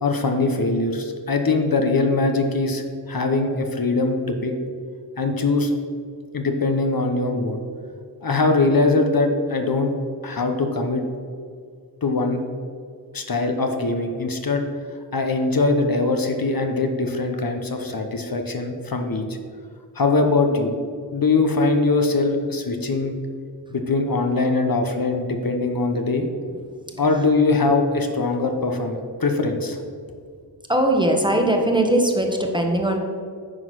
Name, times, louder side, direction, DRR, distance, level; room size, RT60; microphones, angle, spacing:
voice 1, 0.0-4.5 5.2-5.7 6.3-7.6 8.2-9.9 10.2-11.0 12.0-12.4 13.1-14.6 15.1-19.2 19.9-20.7 21.1-23.1 23.7-26.3 27.0-29.8, left 3 dB, 55° left, 4 dB, 0.9 m, -22 dB
voice 2, 30.7-33.0, right 1 dB, 10° right, 2 dB, 1.2 m, -20 dB
9.7 x 3.9 x 6.1 m, 2.1 s
cardioid pair, 45°, 42 cm